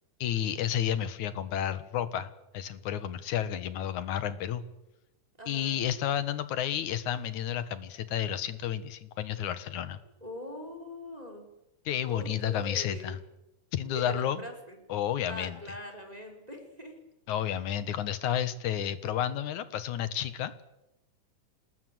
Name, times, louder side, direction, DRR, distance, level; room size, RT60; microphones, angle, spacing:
voice 1, 0.2-4.6 5.5-10.0 11.9-13.2 13.7-14.4 14.9-15.6 17.3-20.5, left 10 dB, 75° left, 13 dB, 2.7 m, -31 dB
voice 2, 5.4-5.8 10.2-11.5 12.0-13.2 13.9-14.8 15.2-17.0, left 1 dB, 10° right, 3 dB, 4.7 m, -42 dB
27.0 x 20.0 x 7.9 m, 0.95 s
omnidirectional pair, 3.5 m